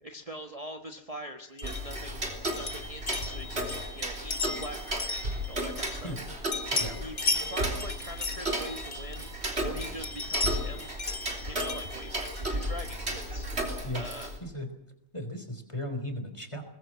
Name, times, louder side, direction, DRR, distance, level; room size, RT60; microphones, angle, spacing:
voice 1, 0.0-2.3 2.5-5.2 5.5-6.1 7.0-11.2 11.5-13.5 13.9-14.3, right 1 dB, 25° right, 4 dB, 1.3 m, -43 dB
sound 1, 1.6-6.2 6.5-9.4 9.8-12.9, left 3 dB, 45° left, 1.9 m, -36 dB
Tick-tock, 1.6-14.4, right 1 dB, 45° right, 3.9 m, -34 dB
voice 2, 15.1-16.6, left 1 dB, 20° left, 8 dB, 3.5 m, -36 dB
23.0 x 20.5 x 7.5 m, 0.82 s
omnidirectional pair, 1.5 m